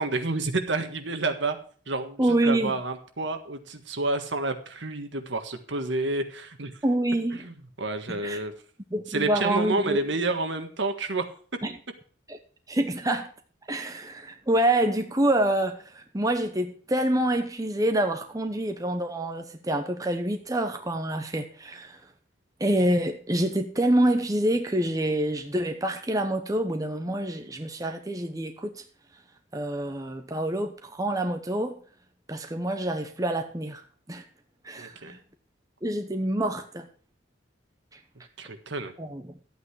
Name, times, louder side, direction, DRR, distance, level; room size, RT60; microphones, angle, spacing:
voice 1, 0.0-1.6 1.9-6.7 7.4-8.5 9.1-11.3 34.8-35.1 38.4-38.9, right 2 dB, 65° right, 1.6 m, -29 dB
voice 2, 2.2-2.8 6.8-7.5 8.1-8.4 8.9-10.0 11.6-11.8 12.3-12.4 12.7-13.3 13.7-22.0 22.6-28.8 29.5-31.8 32.3-34.2 34.6-35.2 35.8-36.9 37.9-38.0 39.0-39.3, right 1 dB, 20° right, 0.9 m, -27 dB
12.5 x 8.7 x 4.7 m
head